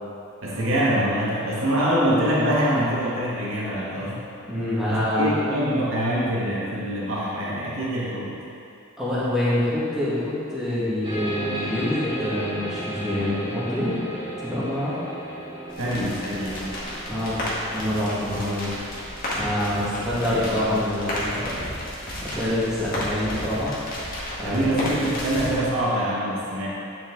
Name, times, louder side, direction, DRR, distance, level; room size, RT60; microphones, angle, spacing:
voice 1, 0.4-4.2 4.9-8.3 15.8-16.7 19.8-20.7 24.4-26.7, equal, 70° right, -7 dB, 1.9 m, -25 dB
voice 2, 4.5-5.3 9.0-14.0 14.4-15.0 16.0-16.1 17.1-17.4 17.7-18.7 19.3-21.6 22.2-23.7 24.4-24.8, left 1 dB, 5° right, -10 dB, 2.1 m, -26 dB
sound 1, 11.0-22.2, right 1 dB, 20° right, 1.5 m, -36 dB
sound 2, 15.7-25.6, left 1 dB, 40° left, 1.9 m, -32 dB
10.5 x 6.0 x 4.0 m, 2.6 s
head